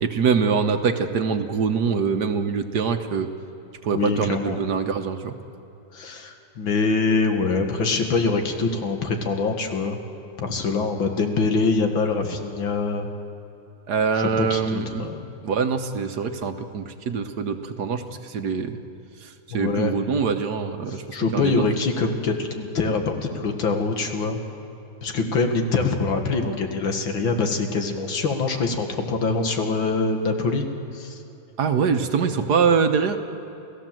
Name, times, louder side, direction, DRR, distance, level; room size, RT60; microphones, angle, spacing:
voice 1, 0.0-3.3 3.8-5.3 13.9-15.1 15.4-18.8 19.2-21.0 21.3-21.6 31.6-33.2, right 5 dB, 60° right, 8 dB, 1.5 m, -24 dB
voice 2, 3.9-4.6 5.9-10.0 10.4-13.1 14.4-15.4 19.5-20.0 20.9-24.4 25.0-30.7 30.9-31.2, left 4 dB, 80° left, 5 dB, 2.6 m, -24 dB
29.0 x 17.0 x 7.6 m, 2.9 s
omnidirectional pair, 2.1 m